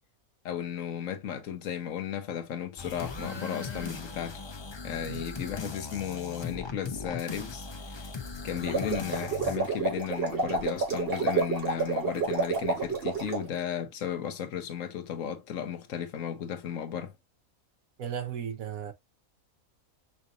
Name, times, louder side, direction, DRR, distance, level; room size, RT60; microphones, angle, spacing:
voice 1, 0.4-4.4 4.8-8.1 8.4-17.1, left 9 dB, 70° left, 1.1 m, -35 dB
sound 1, 2.8-9.6, left 4 dB, 35° left, 0.4 m, -39 dB
sound 2, 8.5-13.5, right 4 dB, 45° right, 1.5 m, -29 dB
voice 2, 18.0-18.9, right 8 dB, 75° right, 1.4 m, -35 dB
5.6 x 2.7 x 2.6 m
omnidirectional pair, 1.5 m